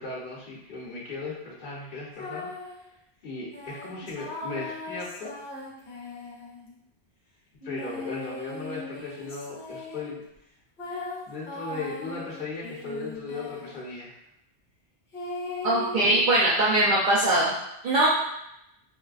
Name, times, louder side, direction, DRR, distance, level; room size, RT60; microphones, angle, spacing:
voice 1, 0.0-2.5 3.2-5.3 7.6-10.2 10.9-14.1, left 3 dB, 50° left, -5 dB, 1.1 m, -37 dB
sound 1, 2.1-2.8 3.5-6.8 7.6-10.2 10.8-13.9 15.1-16.2, left 2 dB, 70° left, 1.1 m, -38 dB
voice 2, 15.6-17.5 17.8-18.1, right 1 dB, 50° right, -7 dB, 0.7 m, -21 dB
5.4 x 2.1 x 2.4 m, 0.80 s
omnidirectional pair, 1.1 m